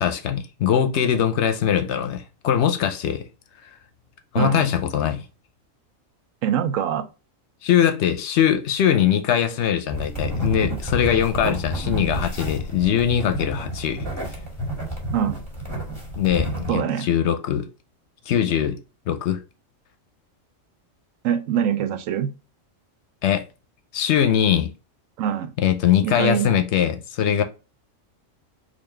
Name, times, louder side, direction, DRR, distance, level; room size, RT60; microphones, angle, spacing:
voice 1, 0.0-3.2 3.6-3.7 4.3-5.2 7.6-14.1 16.2-17.7 18.3-18.8 19.1-19.4 23.2-23.4 23.9-24.7 25.6-27.4, left 9 dB, 65° left, 0.8 m, -21 dB
voice 2, 4.4-4.7 6.4-7.1 15.1-15.4 16.7-17.1 21.2-22.3 25.2-25.5 26.0-26.5, right 9 dB, 80° right, 1.0 m, -24 dB
sound 1, 9.9-16.7, right 1 dB, 10° right, 1.7 m, -30 dB
3.9 x 2.6 x 3.2 m
omnidirectional pair, 1.3 m